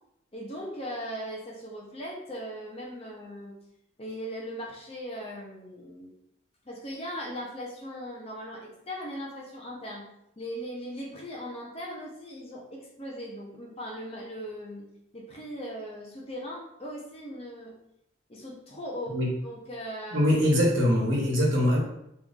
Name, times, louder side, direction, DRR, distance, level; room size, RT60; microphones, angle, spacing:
voice 1, 0.3-3.6 4.0-6.1 6.6-10.1 10.4-17.8 18.3-20.4, equal, 30° left, -2 dB, 0.7 m, -39 dB
voice 2, 20.1-21.8, equal, 80° right, -3 dB, 1.2 m, -23 dB
3.1 x 2.6 x 3.6 m, 0.79 s
head